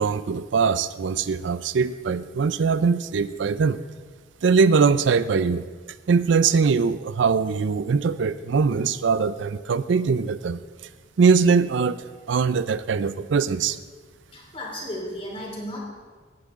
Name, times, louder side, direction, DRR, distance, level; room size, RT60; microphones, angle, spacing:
voice 1, 0.0-3.8 4.4-5.7 6.1-10.6 11.2-13.8, right 5 dB, 75° right, 14 dB, 0.4 m, -22 dB
voice 2, 14.3-15.8, left 1 dB, 30° left, -2 dB, 2.7 m, -34 dB
17.0 x 9.4 x 3.7 m, 1.5 s
head